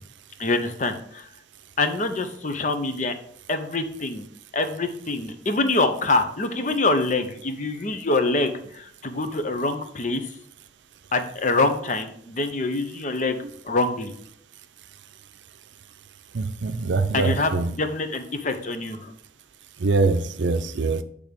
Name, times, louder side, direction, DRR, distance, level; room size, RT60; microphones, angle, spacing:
voice 1, 0.4-1.3 1.8-3.1 3.5-4.2 4.5-10.3 11.1-14.1 17.1-19.1, left 2 dB, 45° left, 8 dB, 0.7 m, -25 dB
voice 2, 16.3-17.7 19.8-21.0, right 3 dB, 85° right, 11 dB, 0.5 m, -23 dB
8.3 x 3.5 x 5.1 m, 0.66 s
head